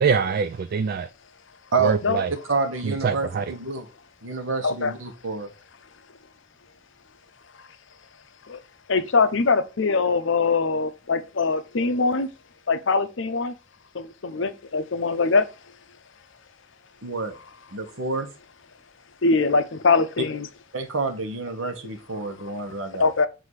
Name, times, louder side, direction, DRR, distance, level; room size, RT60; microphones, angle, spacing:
voice 1, 0.0-1.1 1.8-2.3 2.8-3.5, right 5 dB, 50° right, 0.3 m, -24 dB
voice 2, 2.4-3.9 4.2-5.5 17.0-17.4 17.7-18.3 20.7-23.1, right 3 dB, 85° right, 1.1 m, -28 dB
voice 3, 8.9-12.3 12.7-13.5 13.9-15.5 19.2-20.5 22.2-22.3 23.0-23.3, left 4 dB, 65° left, 0.7 m, -22 dB
7.8 x 2.8 x 4.7 m
head